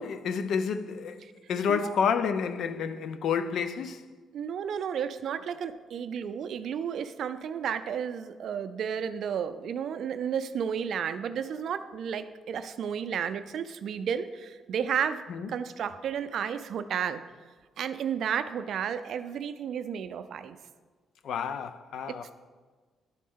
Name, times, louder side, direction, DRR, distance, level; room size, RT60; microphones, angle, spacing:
voice 1, 0.0-4.0 15.3-15.5 21.2-22.2, left 6 dB, 70° left, 0.4 m, -30 dB
voice 2, 4.3-15.2 15.5-17.2 17.8-20.6 22.1-22.3, right 8 dB, 65° right, 0.4 m, -32 dB
11.0 x 4.2 x 3.6 m
cardioid pair, 90°, 0 cm